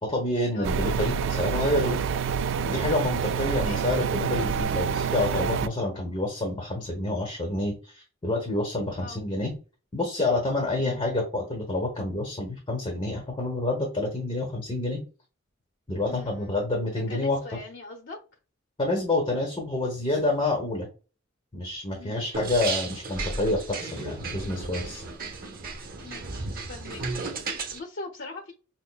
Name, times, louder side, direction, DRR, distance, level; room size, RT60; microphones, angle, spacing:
voice 1, 0.0-2.0 2.6-9.5 9.9-15.0 15.9-17.4 18.8-20.9 21.5-25.0, left 2 dB, 25° left, 1.0 m, -28 dB
sound 1, 0.6-5.7, right 6 dB, 65° right, 0.3 m, -27 dB
voice 2, 3.5-3.8 9.0-9.2 10.8-11.0 16.1-16.5 17.1-18.2 22.0-22.3 26.0-28.5, left 3 dB, 60° left, 0.8 m, -42 dB
sound 2, 22.3-27.8, right 3 dB, 45° right, 0.9 m, -34 dB
6.2 x 2.1 x 2.3 m
head